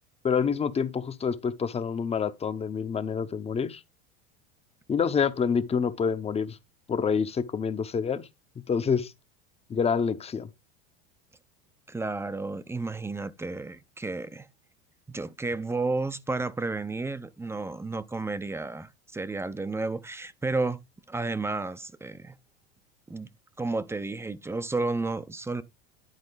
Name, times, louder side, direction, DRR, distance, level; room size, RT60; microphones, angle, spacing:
voice 1, 0.2-3.8 4.9-6.6 6.9-8.3 8.6-9.1 9.7-10.5, left 6 dB, 20° left, 0.9 m, -27 dB
voice 2, 11.9-14.5 15.1-20.8 21.1-22.3 23.1-23.3 23.6-25.6, right 3 dB, 10° right, 0.7 m, -32 dB
11.0 x 4.4 x 4.0 m
supercardioid pair, 115°, 31 cm